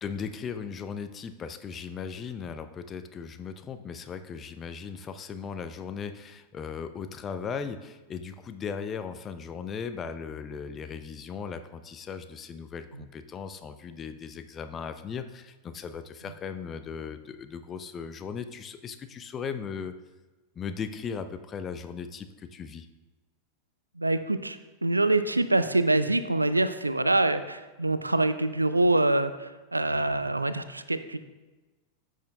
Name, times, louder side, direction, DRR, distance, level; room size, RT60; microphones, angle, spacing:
voice 1, 0.0-19.9 20.6-22.9, left 6 dB, 25° left, 10 dB, 0.5 m, -37 dB
voice 2, 24.0-31.2, right 2 dB, 85° right, 12 dB, 0.4 m, -25 dB
13.5 x 6.3 x 2.3 m, 1.2 s
figure-of-eight pair, 90°, 0 cm